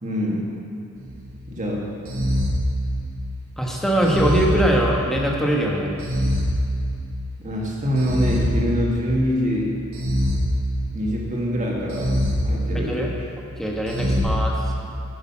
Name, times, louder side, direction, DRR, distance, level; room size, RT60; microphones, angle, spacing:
voice 1, 0.0-0.5 1.5-1.9 7.4-9.8 10.9-12.2 12.4-13.2 13.9-14.4, equal, 35° right, -3 dB, 1.8 m, -25 dB
sound 1, 1.0-1.4 2.1-3.4 4.0-5.3 6.0-7.3 8.0-9.3 9.9-11.2 11.9-13.2 13.9-14.2, equal, 70° right, 1.9 m, -24 dB
voice 2, 3.6-5.9 12.7-13.1 13.6-14.5, right 1 dB, ahead, -2 dB, 1.2 m, -22 dB
9.8 x 6.7 x 7.1 m, 2.5 s
head